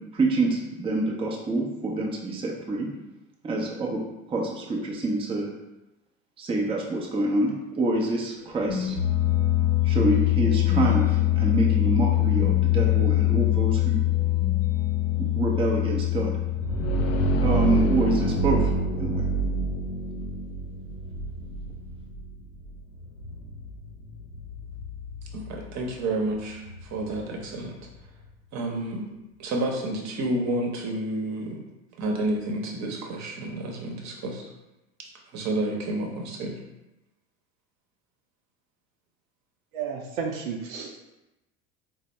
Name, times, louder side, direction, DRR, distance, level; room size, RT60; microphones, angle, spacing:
voice 1, 0.1-2.9 3.4-4.0 4.3-5.5 6.4-9.0 9.8-14.1 15.2-16.3 17.4-18.7 19.0-19.3, right 2 dB, 15° right, -1 dB, 0.6 m, -26 dB
sound 1, 8.5-17.3, left 15 dB, 40° left, 0.9 m, -23 dB
sound 2, 16.4-28.0, right 1 dB, 75° left, 0.6 m, -29 dB
voice 2, 25.3-26.6 26.9-27.8 28.5-29.1 29.4-31.6 32.0-34.5 35.3-36.6, right 1 dB, 40° right, 0 dB, 0.9 m, -30 dB
voice 3, 39.7-41.0, right 6 dB, 70° right, 2 dB, 0.6 m, -32 dB
4.1 x 2.0 x 3.1 m, 0.97 s
hypercardioid pair, 75°, 41 cm